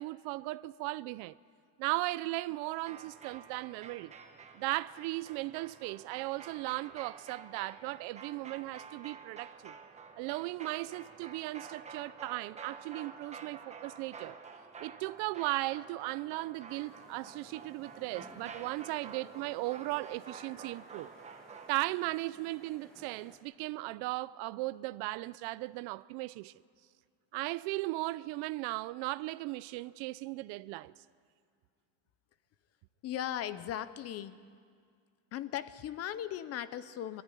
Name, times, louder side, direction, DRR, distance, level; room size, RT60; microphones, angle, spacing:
voice 1, 0.0-1.4 1.8-4.1 4.5-9.8 10.2-14.4 14.8-21.1 21.7-26.5 27.3-30.9, right 20 dB, 60° right, 0.5 m, -37 dB
sound 1, 2.8-21.7, right 5 dB, 15° right, 1.0 m, -50 dB
sound 2, 16.7-23.4, equal, ahead, 2.2 m, -59 dB
voice 2, 33.0-34.4 35.3-37.2, left 11 dB, 35° left, 0.6 m, -38 dB
23.0 x 13.5 x 9.9 m
cardioid pair, 175°, 44 cm